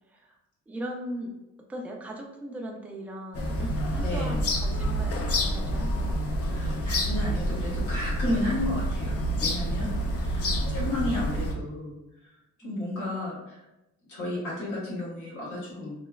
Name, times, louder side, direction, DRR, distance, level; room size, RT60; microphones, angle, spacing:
voice 1, 0.7-1.3 1.7-5.2 5.5-6.2 10.0-10.1 12.6-13.1, right 1 dB, 5° right, 0 dB, 0.4 m, -38 dB
sound 1, 3.3-11.5, equal, 50° left, 0.5 m, -28 dB
voice 2, 4.0-4.4 6.5-12.0 12.2-12.3 12.6-13.6 14.1-15.9, left 1 dB, 75° left, -7 dB, 1.4 m, -33 dB
3.1 x 2.1 x 2.2 m, 0.93 s
cardioid pair, 90°, 30 cm